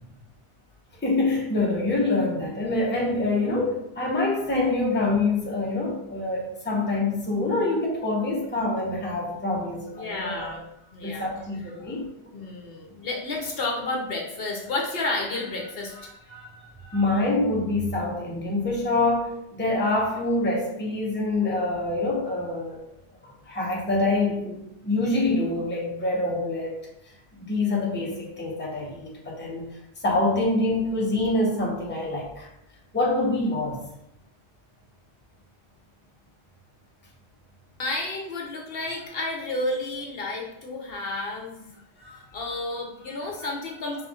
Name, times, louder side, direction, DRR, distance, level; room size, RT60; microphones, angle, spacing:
voice 1, 1.0-10.6 11.0-12.1 16.9-22.8 23.5-26.9 27.5-29.7 30.0-32.5 32.9-33.8, left 2 dB, 10° left, -3 dB, 0.8 m, -25 dB
voice 2, 9.9-10.6 10.9-11.3 11.8-11.9 12.3-17.0 37.8-44.1, left 2 dB, 65° left, 0 dB, 0.9 m, -32 dB
5.5 x 3.5 x 2.4 m, 0.82 s
omnidirectional pair, 1.1 m